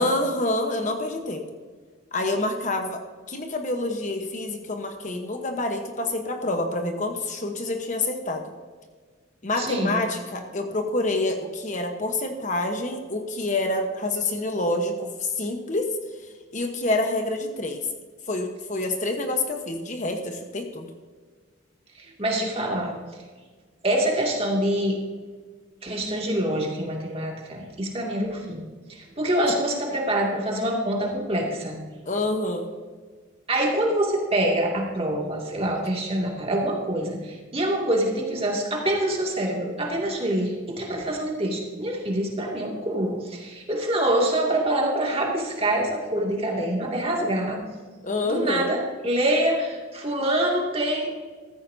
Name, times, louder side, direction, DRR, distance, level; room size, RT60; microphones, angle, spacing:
voice 1, 0.0-1.4 2.1-3.0 3.3-8.5 9.4-15.9 16.5-17.8 18.3-20.9 32.0-32.7 48.0-48.8, left 2 dB, 35° left, 4 dB, 1.1 m, -27 dB
voice 2, 9.6-10.0 21.9-23.0 23.8-25.0 25.8-31.8 33.5-47.6 48.2-51.1, right 1 dB, 30° right, -1 dB, 2.3 m, -25 dB
14.5 x 14.5 x 2.7 m, 1.5 s
head